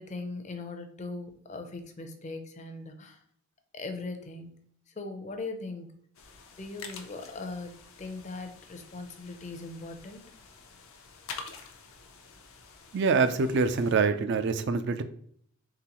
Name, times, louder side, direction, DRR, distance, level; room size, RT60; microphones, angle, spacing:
voice 1, 0.0-3.2 3.7-4.6 5.0-5.9 6.6-10.2, left 3 dB, 35° left, 6 dB, 0.5 m, -40 dB
sound 1, 6.1-13.9, left 5 dB, 75° left, 0.6 m, -48 dB
voice 2, 12.9-15.0, right 4 dB, 55° right, 10 dB, 0.4 m, -25 dB
3.8 x 3.7 x 2.9 m, 0.64 s
head